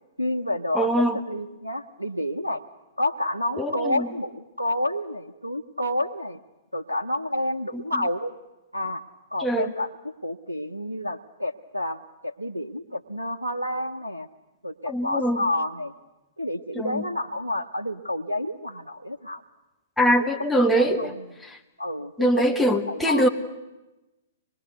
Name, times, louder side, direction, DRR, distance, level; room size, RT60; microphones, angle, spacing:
voice 1, 0.2-2.6 3.0-6.4 6.7-8.3 8.7-9.0 9.3-9.9 10.2-14.3 14.6-15.9 16.4-19.4 20.2-21.1 21.8-23.3, left 1 dB, 90° right, 6 dB, 0.8 m, -29 dB
voice 2, 0.7-1.2 3.6-4.1 9.4-9.7 14.9-15.4 16.7-17.0 20.0-21.1 22.2-23.3, equal, 5° left, 2 dB, 1.7 m, -22 dB
24.5 x 21.0 x 8.1 m, 1.1 s
figure-of-eight pair, 110°, 0 cm